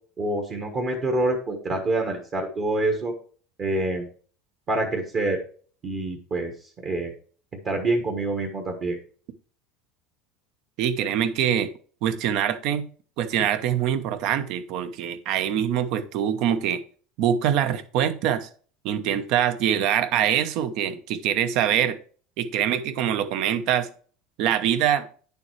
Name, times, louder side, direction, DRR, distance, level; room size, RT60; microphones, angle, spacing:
voice 1, 0.2-3.1 3.6-4.1 4.7-5.4 5.8-6.5 6.8-7.1 7.6-9.0, right 2 dB, 25° right, 1.3 m, -26 dB
voice 2, 10.8-11.7 12.0-12.9 13.2-16.8 17.2-18.5 18.8-22.0 22.4-23.9 24.4-25.1, right 9 dB, 50° right, 0.9 m, -24 dB
9.6 x 6.9 x 3.2 m
cardioid pair, 165°, 0 cm